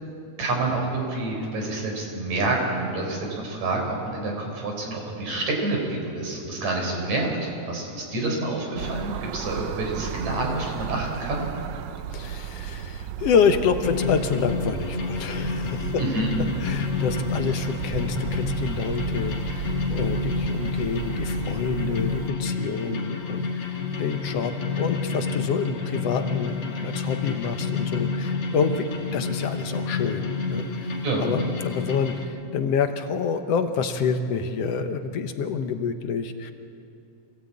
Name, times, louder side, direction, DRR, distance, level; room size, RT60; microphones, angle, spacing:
voice 1, 0.4-11.5 16.0-16.3 31.0-31.3, right 2 dB, 70° right, 0 dB, 5.7 m, -28 dB
sound 1, 8.8-22.3, right 10 dB, 90° right, 2.1 m, -34 dB
voice 2, 12.1-16.0 16.6-30.9 31.2-36.5, left 6 dB, 65° left, 8 dB, 1.9 m, -27 dB
sound 2, 13.8-32.2, left 5 dB, 50° left, 2.7 m, -29 dB
26.0 x 17.0 x 8.6 m, 2.6 s
omnidirectional pair, 3.3 m